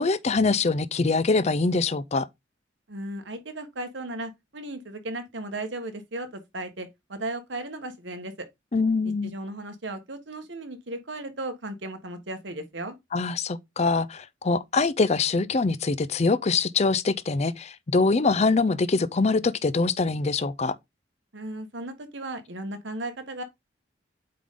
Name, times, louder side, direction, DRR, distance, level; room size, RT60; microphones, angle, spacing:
voice 1, 0.0-2.3 8.7-9.3 13.1-20.7, left 3 dB, 35° left, 0.5 m, -24 dB
voice 2, 2.9-8.5 9.2-12.9 21.3-23.4, right 2 dB, 70° right, 1.4 m, -36 dB
8.4 x 3.8 x 3.7 m
head